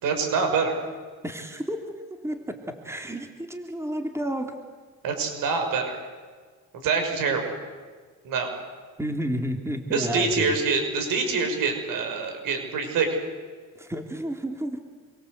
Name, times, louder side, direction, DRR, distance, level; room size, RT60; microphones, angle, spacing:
voice 1, 0.0-0.8 5.0-6.0 6.8-7.6 8.2-8.5 9.9-13.1, right 4 dB, 85° right, 5 dB, 6.2 m, -25 dB
voice 2, 1.2-2.6 2.8-4.5 9.0-10.5 13.8-14.8, equal, 10° right, 4 dB, 3.2 m, -31 dB
27.0 x 23.5 x 8.2 m, 1.5 s
cardioid pair, 95°, 33 cm